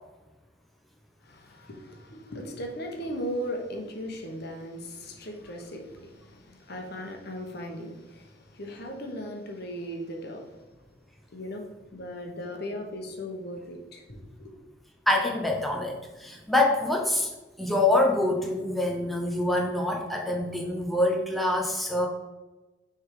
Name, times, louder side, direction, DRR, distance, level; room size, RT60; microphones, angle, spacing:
voice 1, 1.2-10.6 11.3-14.5, equal, 60° left, 2 dB, 1.2 m, -37 dB
voice 2, 15.1-17.3 17.6-22.1, left 2 dB, ahead, 0 dB, 0.7 m, -25 dB
6.5 x 3.6 x 4.8 m, 1.2 s
head